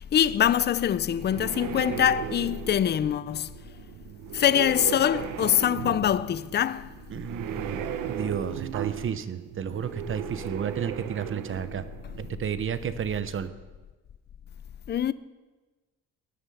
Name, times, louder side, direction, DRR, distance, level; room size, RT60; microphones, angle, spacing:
voice 1, 0.0-3.5 4.3-6.9 14.9-15.1, left 10 dB, 30° left, 0.5 m, -24 dB
sound 1, 0.8-12.6, right 10 dB, 75° right, 1.1 m, -37 dB
voice 2, 7.1-11.8 12.2-13.5, right 8 dB, 40° right, 1.0 m, -32 dB
18.5 x 11.0 x 5.6 m
cardioid pair, 115°, 32 cm